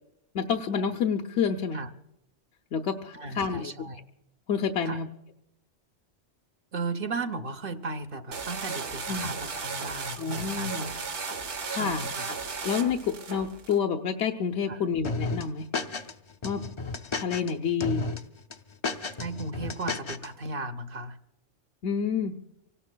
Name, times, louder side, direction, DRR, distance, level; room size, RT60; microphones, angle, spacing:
voice 1, 0.3-1.8 2.7-3.7 4.5-5.1 9.1-9.3 10.2-10.9 11.7-12.4 12.6-15.7 16.4-16.6 17.2-18.1 21.8-22.3, left 6 dB, 70° left, 3 dB, 0.9 m, -29 dB
voice 2, 3.1-4.0 4.8-5.0 6.7-10.7 11.7-12.3 14.7-14.8 19.2-21.2, right 3 dB, 50° right, 9 dB, 1.0 m, -35 dB
sound 1, 8.3-13.8, right 5 dB, 75° right, 1.3 m, -35 dB
sound 2, 15.0-16.1 16.4-17.5 17.8-18.2 18.5-20.3, left 3 dB, 35° left, 0.5 m, -32 dB
25.0 x 18.0 x 2.2 m, 0.86 s
omnidirectional pair, 1.2 m